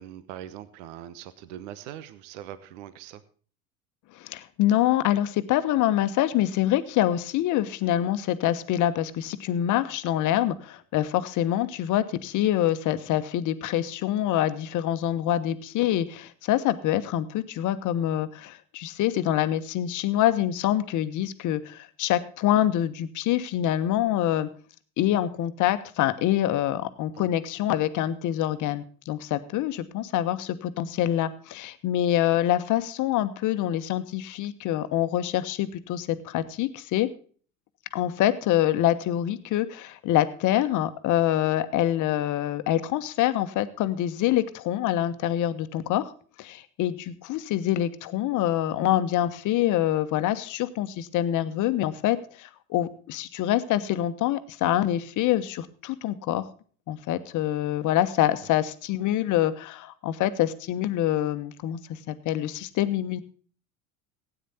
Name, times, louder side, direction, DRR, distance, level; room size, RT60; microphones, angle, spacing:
voice 1, 0.0-3.2 27.1-27.3, right 11 dB, 55° right, 15 dB, 1.1 m, -42 dB
voice 2, 4.1-24.5 25.0-37.1 37.9-46.1 46.4-56.5 56.9-61.8 62.1-63.2, left 12 dB, 45° left, 12 dB, 1.3 m, -25 dB
16.5 x 9.4 x 4.2 m, 0.43 s
figure-of-eight pair, 75°, 43 cm